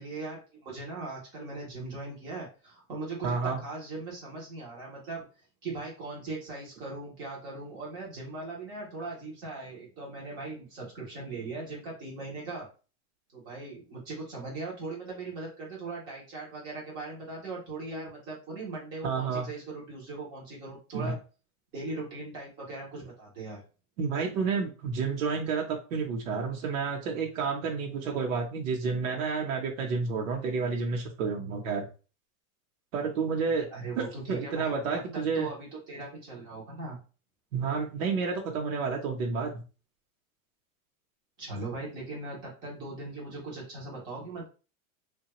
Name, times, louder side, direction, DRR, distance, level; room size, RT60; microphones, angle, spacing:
voice 1, 0.0-5.2 5.6-12.7 13.3-21.2 21.7-23.6 33.7-37.0 41.4-44.5, right 3 dB, 10° right, -4 dB, 0.4 m, -39 dB
voice 2, 3.2-3.6 19.0-19.5 20.9-21.2 24.0-31.9 32.9-33.7 34.0-35.5 37.5-39.5, right 5 dB, 65° right, 1 dB, 0.8 m, -30 dB
3.2 x 2.2 x 2.8 m, 0.34 s
supercardioid pair, 175°, 43 cm